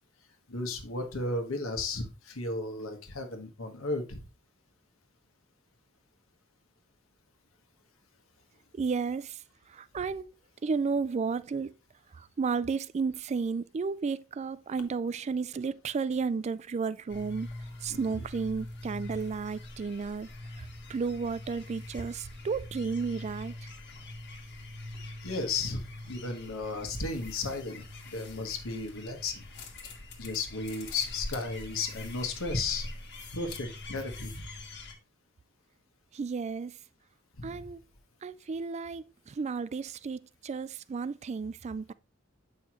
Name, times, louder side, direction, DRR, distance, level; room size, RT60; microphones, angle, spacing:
voice 1, 0.5-4.2 17.9-18.2 25.2-29.5 30.2-32.9 33.3-34.4 37.4-37.7, left 3 dB, 90° left, 1.4 m, -34 dB
voice 2, 8.7-9.4 9.7-10.3 10.6-11.7 12.1-17.5 17.8-20.3 20.6-23.7 36.1-36.8 37.4-37.8 38.2-41.9, right 5 dB, 35° right, 0.3 m, -33 dB
sound 1, 17.1-34.9, left 2 dB, 60° left, 1.5 m, -43 dB
7.9 x 5.5 x 3.0 m
head